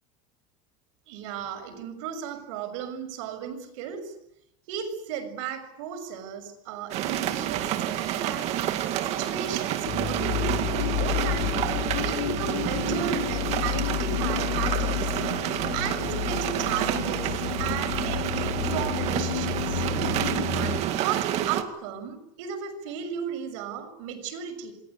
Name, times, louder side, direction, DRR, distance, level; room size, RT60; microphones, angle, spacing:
voice 1, 1.1-4.1 4.7-8.6 9.0-11.6 12.0-15.2 15.7-19.8 20.5-24.7, right 8 dB, 60° right, 6.6 m, -35 dB
sound 1, 6.9-21.6, right 12 dB, 35° right, 2.2 m, -29 dB
sound 2, 9.8-20.8, left 10 dB, 80° left, 4.2 m, -30 dB
28.5 x 21.0 x 9.8 m
supercardioid pair, 175°, 18 cm